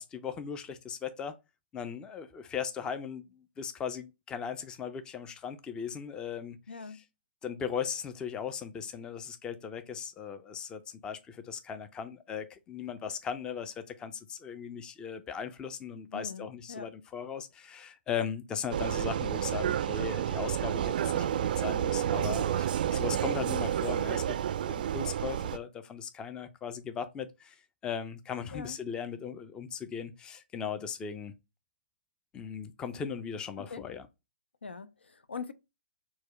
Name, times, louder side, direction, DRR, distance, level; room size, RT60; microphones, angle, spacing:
voice 1, 0.0-1.4 1.7-6.6 7.4-24.4 24.7-27.6 27.8-31.3 32.3-34.0, left 7 dB, 15° left, 0.4 m, -38 dB
voice 2, 6.7-7.0 16.1-16.9 28.5-28.8 33.6-33.9 34.6-35.5, left 5 dB, 85° left, 0.4 m, -42 dB
Vehicle, 18.7-25.6, right 10 dB, 55° right, 0.3 m, -30 dB
4.4 x 2.2 x 3.0 m
hypercardioid pair, 130°, 6 cm